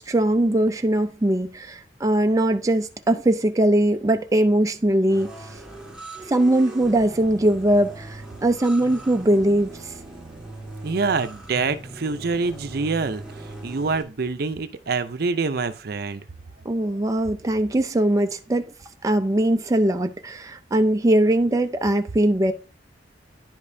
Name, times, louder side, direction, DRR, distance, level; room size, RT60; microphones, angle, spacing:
voice 1, 0.0-5.3 6.2-9.9 16.7-18.7 19.0-22.5, right 1 dB, 20° right, 0.4 m, -21 dB
sound 1, 5.1-14.0, right 2 dB, 5° right, 1.7 m, -40 dB
voice 2, 10.8-16.2, right 4 dB, 60° right, 0.6 m, -26 dB
10.5 x 5.2 x 2.7 m
head